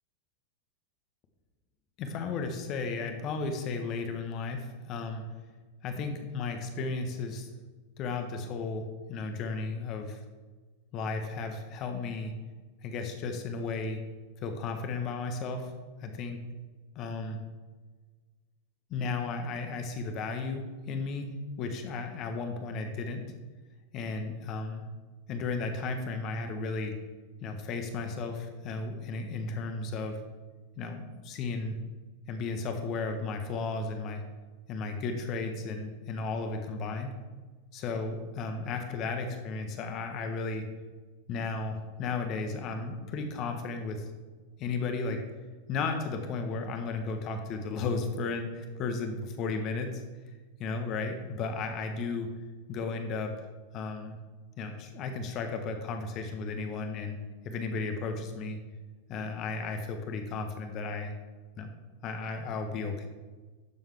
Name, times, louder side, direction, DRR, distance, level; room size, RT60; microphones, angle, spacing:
voice 1, 2.0-5.2 5.8-7.5 8.0-10.2 10.9-12.3 12.8-14.0 14.4-15.7 16.0-16.4 16.9-17.4 18.9-23.2 23.9-24.8 25.3-27.0 27.4-30.2 30.8-31.8 32.3-34.2 34.7-37.2 37.7-40.6 41.3-44.0 44.6-45.2 45.7-50.0 50.6-52.3 52.7-53.3 53.7-54.2 54.6-57.2 57.4-58.6 59.1-61.1 61.6-61.7 62.0-63.1, left 4 dB, 40° left, 5 dB, 1.5 m, -34 dB
12.0 x 7.2 x 3.6 m, 1.4 s
figure-of-eight pair, 90°, 0 cm